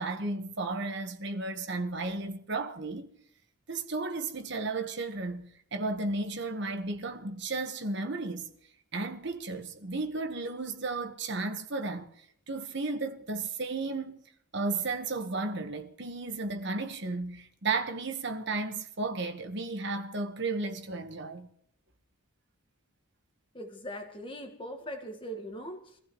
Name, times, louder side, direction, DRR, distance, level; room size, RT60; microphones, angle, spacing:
voice 1, 0.0-3.1 3.7-8.5 8.9-12.1 12.5-14.2 14.5-21.5, right 3 dB, 55° right, 1.3 m, -34 dB
voice 2, 23.5-26.0, equal, 25° left, 1.6 m, -40 dB
24.5 x 15.5 x 3.1 m
head